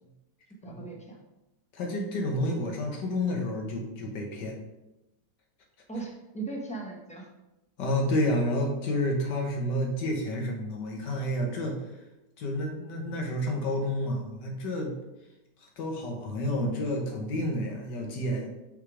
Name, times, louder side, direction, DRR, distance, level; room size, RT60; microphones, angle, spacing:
voice 1, 0.6-1.2 5.9-7.3, right 3 dB, 5° left, -2 dB, 0.5 m, -38 dB
voice 2, 1.7-4.6 7.8-11.8 12.4-15.0 15.8-18.5, left 1 dB, 90° left, 1 dB, 1.7 m, -30 dB
5.6 x 3.4 x 4.8 m, 0.96 s
omnidirectional pair, 1.8 m